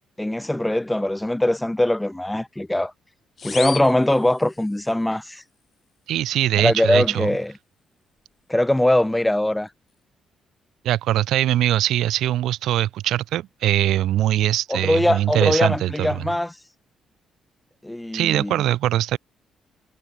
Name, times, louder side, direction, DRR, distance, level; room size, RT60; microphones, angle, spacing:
voice 1, 0.2-2.9 3.4-5.4 6.6-7.5 8.5-9.7 14.7-16.6 17.8-18.6, left 1 dB, 10° left, 1.7 m, -21 dB
sound 1, 3.4-4.9, left 5 dB, 40° left, 6.0 m, -35 dB
voice 2, 6.1-7.3 10.8-16.2 18.1-19.2, right 13 dB, 80° right, 3.7 m, -22 dB
cardioid pair, 90°, 0 cm